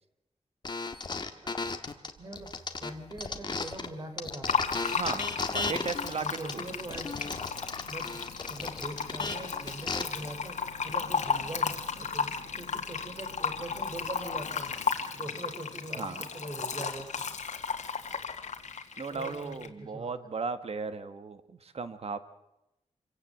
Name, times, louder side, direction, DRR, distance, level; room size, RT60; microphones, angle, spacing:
sound 1, 0.6-3.9 4.2-10.0, left 3 dB, 35° left, 1.5 m, -35 dB
voice 1, 1.4-1.8 2.2-4.7 5.6-7.2 7.9-8.2 8.5-14.7 15.1-17.2 19.1-20.4, right 1 dB, 35° right, 6 dB, 3.6 m, -42 dB
sound 2, 2.2-14.8, right 2 dB, 85° right, 2.5 m, -56 dB
Fill (with liquid), 4.5-19.7, left 6 dB, 90° left, 1.8 m, -34 dB
voice 2, 4.9-6.6 6.9-7.0 15.9-16.3 19.0-22.2, right 5 dB, 55° right, 11 dB, 1.4 m, -36 dB
26.0 x 16.5 x 7.6 m, 0.90 s
wide cardioid pair, 180°, 12 cm